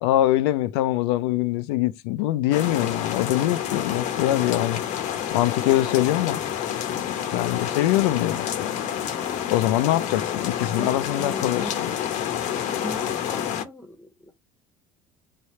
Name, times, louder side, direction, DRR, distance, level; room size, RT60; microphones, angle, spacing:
voice 1, 0.0-4.8 5.3-6.4 6.9-8.8 9.5-11.6, left 14 dB, 85° left, 0.4 m, -23 dB
sound 1, 2.5-13.6, left 9 dB, 65° left, 0.7 m, -28 dB
voice 2, 10.8-11.8 12.7-14.3, left 1 dB, 10° left, 0.8 m, -39 dB
3.3 x 2.3 x 4.0 m
supercardioid pair, 90°, 14 cm